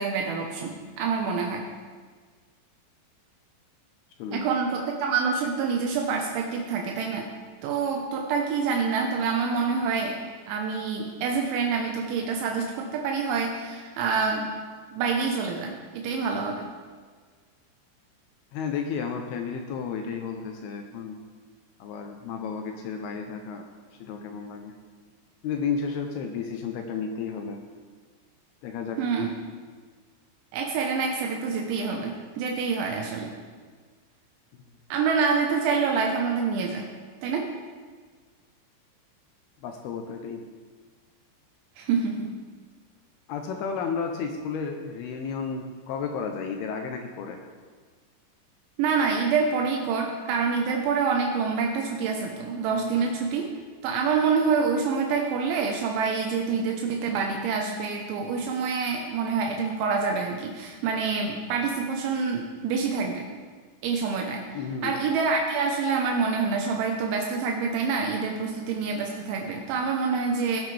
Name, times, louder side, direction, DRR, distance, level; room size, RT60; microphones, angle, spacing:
voice 1, 0.0-1.6 4.3-7.3 7.6-10.2 10.5-14.5 14.9-16.7 29.0-29.3 30.5-33.3 34.9-36.9 37.2-37.5 41.8-42.3 48.8-53.5 53.8-63.3 63.8-70.6, right 5 dB, 80° right, 1 dB, 3.3 m, -27 dB
voice 2, 18.5-21.2 21.8-23.7 24.0-24.7 25.4-27.6 28.6-29.0 39.6-40.4 43.3-47.4 64.5-65.0, left 6 dB, 80° left, 4 dB, 2.3 m, -32 dB
18.5 x 9.1 x 3.3 m, 1.5 s
omnidirectional pair, 5.3 m